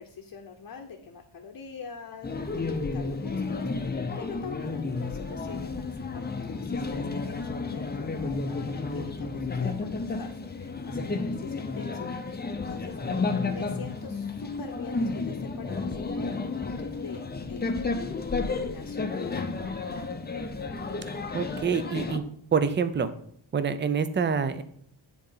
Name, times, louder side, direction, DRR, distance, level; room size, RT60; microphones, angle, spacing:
voice 1, 0.0-13.0 13.4-17.2 17.5-17.8 18.4-19.3, left 6 dB, 50° left, 1 dB, 0.8 m, -44 dB
sound 1, 2.2-22.2, left 3 dB, 20° left, 0.6 m, -32 dB
voice 2, 21.3-22.2 22.5-23.1 23.5-24.6, right 6 dB, 25° right, 12 dB, 0.4 m, -26 dB
10.0 x 3.9 x 5.5 m, 0.65 s
wide cardioid pair, 170°, 48 cm